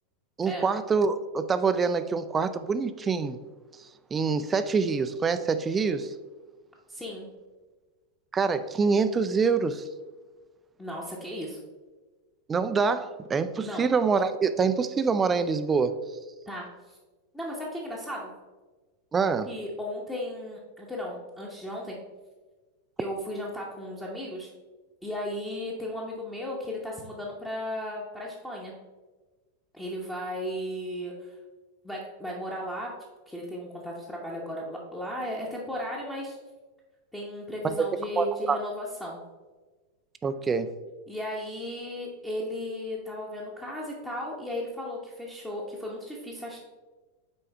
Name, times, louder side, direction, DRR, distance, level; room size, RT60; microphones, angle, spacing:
voice 1, 0.4-3.4 4.1-6.1 8.3-9.8 12.5-15.9 19.1-19.5 37.6-37.9 38.2-38.6 40.2-40.7, right 5 dB, 20° right, 11 dB, 0.3 m, -25 dB
voice 2, 6.9-7.3 10.8-11.6 13.6-13.9 16.5-17.0 17.3-18.3 19.5-22.0 23.0-24.5 25.0-28.7 29.7-31.4 31.8-32.9 33.3-36.4 37.1-39.2 41.1-46.6, left 1 dB, 10° left, -4 dB, 0.9 m, -35 dB
6.8 x 4.6 x 3.3 m, 1.3 s
figure-of-eight pair, 90°, 0 cm